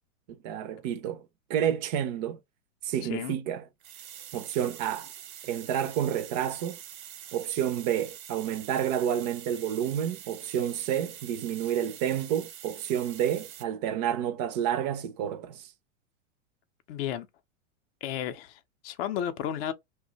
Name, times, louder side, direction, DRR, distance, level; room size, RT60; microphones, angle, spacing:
voice 1, 0.4-1.2 1.5-2.4 2.8-3.7 4.3-5.1 5.4-6.8 7.3-15.7, right 10 dB, 35° right, 0.4 m, -29 dB
voice 2, 3.0-3.4 16.9-17.3 18.0-19.7, left 10 dB, 45° left, 0.5 m, -33 dB
sound 1, 3.8-13.6, right 10 dB, 85° right, 0.9 m, -45 dB
2.7 x 2.1 x 3.8 m
hypercardioid pair, 135°, 41 cm